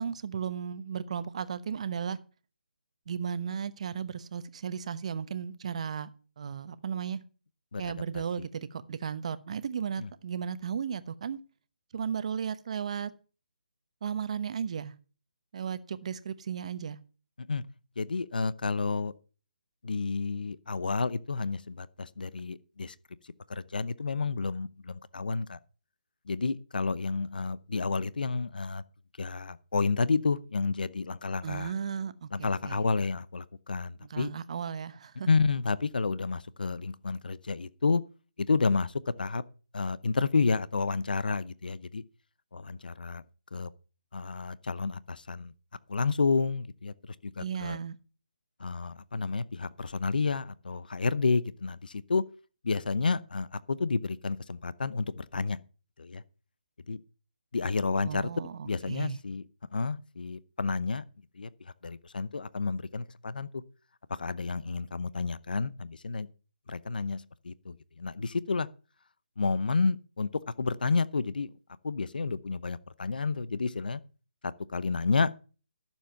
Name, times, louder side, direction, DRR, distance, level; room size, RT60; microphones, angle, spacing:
voice 1, 0.0-2.2 3.1-6.1 6.4-7.2 7.8-11.4 11.9-13.1 14.0-14.9 15.5-17.0 31.4-32.8 34.0-35.3 47.4-48.0 58.0-59.2, right 7 dB, 45° right, 1.0 m, -35 dB
voice 2, 18.0-19.1 19.8-22.9 23.5-25.6 26.3-28.8 29.2-31.7 32.3-34.3 35.3-38.0 38.4-39.4 39.7-42.0 42.5-43.2 43.5-43.7 44.1-45.5 45.9-46.9 47.4-47.8 48.6-52.2 52.6-55.6 56.0-56.2 56.9-57.0 57.5-58.3 58.7-59.4 59.7-61.0 61.4-61.5 61.8-63.5 64.1-66.3 66.7-68.7 69.4-70.3 70.6-71.5 71.8-74.0 74.4-75.3, left 4 dB, 75° left, 0.7 m, -30 dB
13.5 x 7.3 x 5.8 m
figure-of-eight pair, 160°, 5 cm